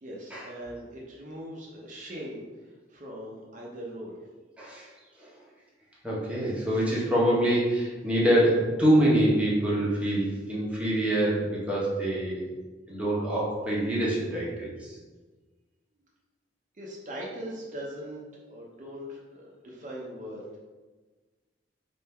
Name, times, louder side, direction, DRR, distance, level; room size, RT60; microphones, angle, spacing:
voice 1, 0.0-4.2 16.7-20.6, equal, 45° right, -3 dB, 0.7 m, -40 dB
voice 2, 4.6-4.9 5.2-5.3 6.0-12.5 12.9-15.0, right 1 dB, 5° right, -6 dB, 0.9 m, -25 dB
3.6 x 2.6 x 4.2 m, 1.3 s
head